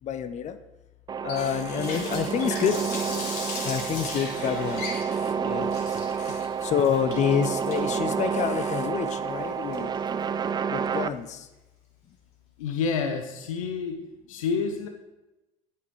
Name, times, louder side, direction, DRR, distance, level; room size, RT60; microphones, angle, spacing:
voice 1, 0.0-0.6 1.2-2.8 3.1-3.3 3.6-9.9 10.7-11.5, left 8 dB, 45° left, 11 dB, 0.9 m, -28 dB
sound 1, 1.1-11.1, right 6 dB, 25° right, 0.5 m, -29 dB
Water tap faucet, 1.3-10.2, left 3 dB, 60° left, 3.1 m, -38 dB
voice 2, 12.6-14.0 14.3-14.9, left 5 dB, 80° left, 6 dB, 0.9 m, -28 dB
10.0 x 8.2 x 4.7 m, 0.99 s
hypercardioid pair, 70°, 17 cm